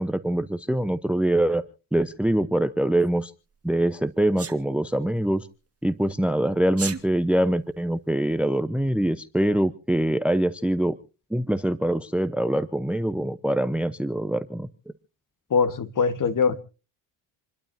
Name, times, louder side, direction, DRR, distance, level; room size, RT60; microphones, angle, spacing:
voice 1, 0.0-1.6 1.9-3.3 3.6-5.5 5.8-11.0 11.3-14.7, right 1 dB, ahead, 15 dB, 0.8 m, -24 dB
Sneeze, 4.4-4.6 6.7-7.0, right 6 dB, 30° right, 1.9 m, -32 dB
voice 2, 15.5-16.6, left 5 dB, 40° left, 13 dB, 1.6 m, -22 dB
28.0 x 12.0 x 2.7 m, 0.34 s
supercardioid pair, 80°, 49 cm